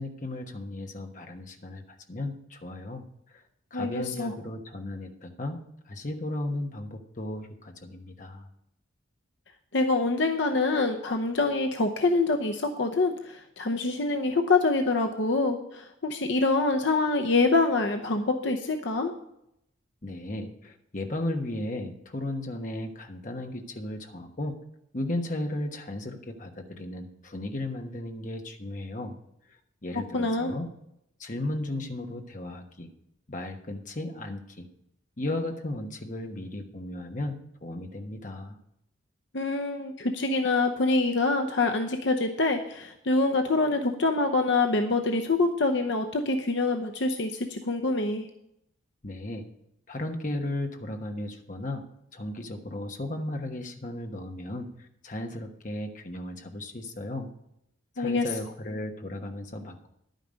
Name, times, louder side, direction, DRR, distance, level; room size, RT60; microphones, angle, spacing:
voice 1, 0.0-3.4 3.7-8.5 20.0-24.6 24.9-29.2 29.8-30.7 31.2-32.9 33.3-34.7 35.2-38.6 49.0-49.5 49.9-51.8 52.1-57.3 58.0-59.9, left 1 dB, 40° left, 4 dB, 1.2 m, -35 dB
voice 2, 3.7-4.3 9.7-19.1 30.1-30.5 39.3-48.3 58.0-58.2, left 3 dB, 60° left, 4 dB, 0.8 m, -25 dB
11.0 x 9.2 x 5.2 m, 0.77 s
head